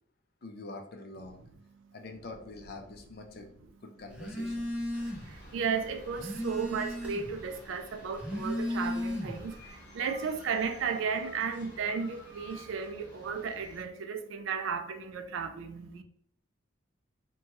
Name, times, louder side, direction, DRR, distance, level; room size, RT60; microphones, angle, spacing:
voice 1, 0.4-1.4 1.9-4.7, left 2 dB, 50° left, 0.4 m, -45 dB
Telephone, 4.1-5.4 5.8-7.4 8.1-9.6, left 1 dB, 5° right, 0.5 m, -35 dB
sound 1, 4.9-13.8, equal, 10° left, 1.2 m, -54 dB
voice 2, 5.1-16.0, right 6 dB, 75° right, 0.3 m, -34 dB
sound 2, 8.7-13.0, equal, 45° right, 1.1 m, -53 dB
2.8 x 2.2 x 2.9 m
head